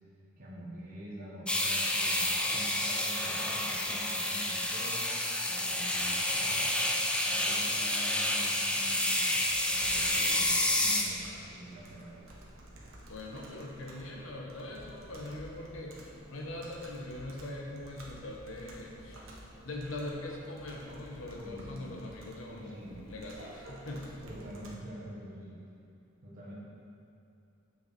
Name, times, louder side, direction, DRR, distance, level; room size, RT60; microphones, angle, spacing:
voice 1, 0.4-5.1 5.5-6.9 7.3-12.2 21.3-21.9 22.5-23.0 24.2-25.5 26.2-26.5, equal, 40° right, -8 dB, 1.5 m, -46 dB
sound 1, 1.5-11.0, left 1 dB, 5° left, 0.4 m, -29 dB
Computer keyboard, 9.8-24.8, right 1 dB, 75° right, 1.2 m, -51 dB
voice 2, 13.1-19.3 19.6-24.2, left 2 dB, 70° left, 0 dB, 1.1 m, -42 dB
7.1 x 6.3 x 4.3 m, 2.7 s
head